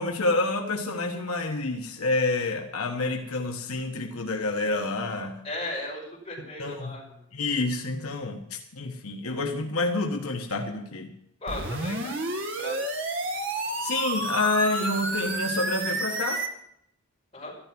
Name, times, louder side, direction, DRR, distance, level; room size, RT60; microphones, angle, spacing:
voice 1, 0.0-5.4 6.6-7.0 7.3-11.1 13.8-16.4, left 2 dB, 85° left, 3 dB, 1.3 m, -28 dB
voice 2, 5.4-7.1 11.4-12.8 17.3-17.5, left 1 dB, 25° left, -4 dB, 5.8 m, -36 dB
sound 1, 11.5-16.5, right 2 dB, 55° right, 1.8 m, -30 dB
13.0 x 12.0 x 6.1 m, 0.76 s
head